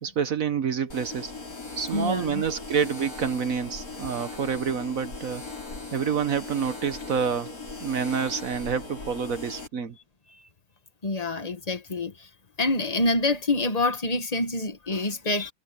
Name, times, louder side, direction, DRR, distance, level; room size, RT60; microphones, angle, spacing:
voice 1, 0.0-1.3 1.8-5.4 5.9-7.5 7.8-10.0, right 7 dB, 50° right, 1.1 m, -28 dB
sound 1, 0.9-9.7, left 3 dB, 45° left, 5.4 m, -39 dB
voice 2, 1.9-2.4 11.0-12.3 12.6-15.5, left 2 dB, 20° left, 1.3 m, -26 dB
omnidirectional pair, 2.2 m